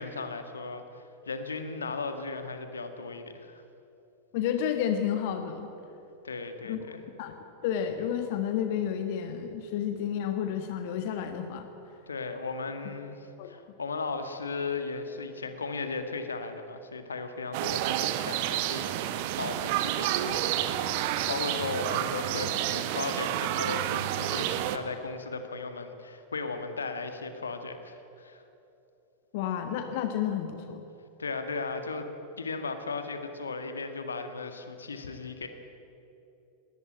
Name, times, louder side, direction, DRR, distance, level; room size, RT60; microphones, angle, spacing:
voice 1, 0.0-3.6 6.2-7.1 12.1-28.4 31.2-32.1 32.4-35.5, left 4 dB, 75° left, 7 dB, 1.9 m, -36 dB
voice 2, 4.3-5.7 6.6-6.8 7.2-7.4 7.6-11.7 13.4-13.5 29.3-30.8, left 9 dB, 50° left, 7 dB, 1.4 m, -31 dB
sound 1, 17.5-24.8, right 12 dB, 50° right, 1.2 m, -29 dB
20.0 x 19.0 x 9.0 m, 2.9 s
figure-of-eight pair, 90°, 0 cm